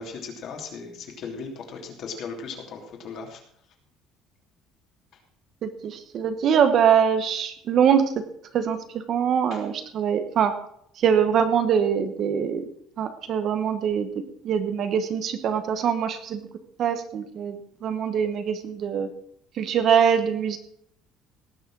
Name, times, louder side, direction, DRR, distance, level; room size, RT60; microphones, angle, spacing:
voice 1, 0.0-3.4 9.5-9.6, left 5 dB, 45° left, 2 dB, 3.1 m, -37 dB
voice 2, 5.6-8.1 8.5-10.6 11.0-12.7 13.0-16.4 16.8-19.1 19.5-20.6, right 8 dB, 40° right, 9 dB, 1.2 m, -23 dB
18.0 x 6.5 x 6.2 m, 0.68 s
cardioid pair, 170°, 0 cm